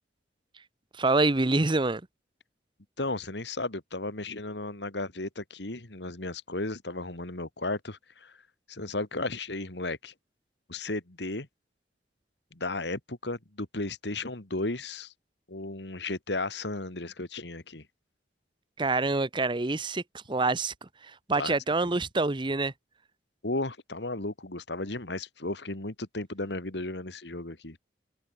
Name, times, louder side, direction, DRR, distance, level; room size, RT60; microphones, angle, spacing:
voice 1, 1.0-2.0 18.8-20.0 20.3-22.7, right 3 dB, 25° right, 0.9 m, -26 dB
voice 2, 3.0-8.3 8.7-10.1 10.7-11.5 12.5-15.1 15.5-17.8 21.4-21.5 23.4-27.8, left 2 dB, 70° left, 2.5 m, -34 dB
head